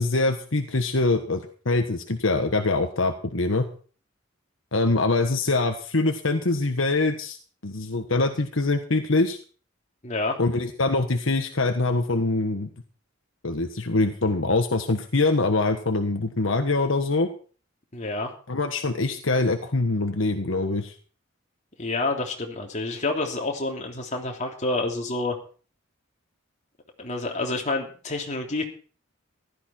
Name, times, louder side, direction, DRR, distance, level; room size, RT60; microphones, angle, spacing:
voice 1, 0.0-3.7 4.7-7.4 7.6-9.4 10.4-12.7 13.4-17.3 18.5-20.9, left 2 dB, 75° left, 6 dB, 1.4 m, -24 dB
voice 2, 10.0-10.4 17.9-18.3 21.8-25.4 27.0-28.6, left 2 dB, 35° left, 1 dB, 3.1 m, -28 dB
15.5 x 12.5 x 4.5 m, 0.40 s
head